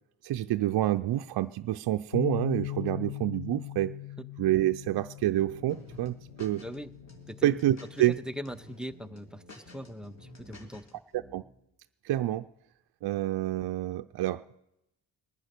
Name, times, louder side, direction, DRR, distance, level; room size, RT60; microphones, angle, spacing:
voice 1, 0.2-3.9 4.4-6.6 7.4-8.2 11.1-11.4 12.0-12.5 13.0-14.4, right 14 dB, 65° right, 7 dB, 0.5 m, -28 dB
Bass guitar, 2.1-8.4, left 15 dB, 60° left, 0.5 m, -40 dB
sound 1, 4.8-10.8 11.1-11.4, equal, 85° left, 5.9 m, -55 dB
sound 2, 5.7-6.8 7.1-8.2 8.5-8.8 9.2-10.9, left 2 dB, 40° left, 2.5 m, -51 dB
voice 2, 8.0-10.9, equal, ahead, 10 dB, 0.6 m, -40 dB
19.0 x 9.7 x 6.6 m, 0.84 s
cardioid pair, 80°, 42 cm